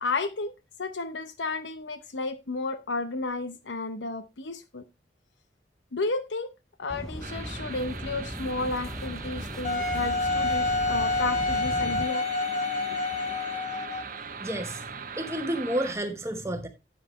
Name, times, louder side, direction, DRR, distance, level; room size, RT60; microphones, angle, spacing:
voice 1, 0.0-0.5 0.8-4.8 5.9-6.5 6.8-12.3 12.8-13.0, left 3 dB, 85° left, 0.8 m, -32 dB
sound 1, 6.9-12.0, equal, 5° left, 0.5 m, -38 dB
sound 2, 7.2-16.0, right 5 dB, 50° right, 1.1 m, -40 dB
Wind instrument woodwind instrument, 9.6-14.2, left 3 dB, 40° left, 1.3 m, -28 dB
voice 2, 14.4-14.8 15.2-16.7, right 1 dB, 15° right, 1.0 m, -30 dB
9.1 x 7.9 x 3.1 m
head